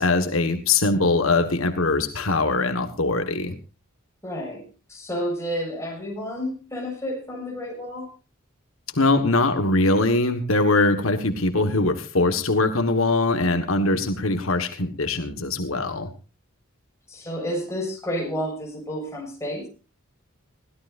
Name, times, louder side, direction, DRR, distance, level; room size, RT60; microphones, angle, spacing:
voice 1, 0.0-3.5 8.9-16.1, left 2 dB, 75° left, 7 dB, 1.6 m, -22 dB
voice 2, 4.2-8.1 17.1-19.7, equal, 15° left, 0 dB, 6.8 m, -30 dB
22.0 x 16.5 x 2.7 m, 0.33 s
head